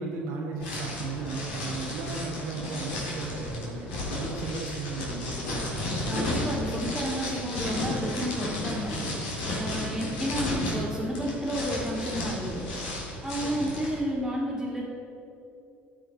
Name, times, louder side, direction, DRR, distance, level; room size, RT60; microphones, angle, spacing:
voice 1, 0.0-6.1 9.1-9.2 13.4-13.8, right 3 dB, 70° right, -1 dB, 1.3 m, -35 dB
sound 1, 0.6-14.0, left 1 dB, 75° left, 2.1 m, -33 dB
voice 2, 6.0-8.9 9.6-12.6 13.2-14.8, equal, ahead, -9 dB, 2.2 m, -31 dB
13.5 x 5.2 x 3.9 m, 2.7 s
hypercardioid pair, 60°, 6 cm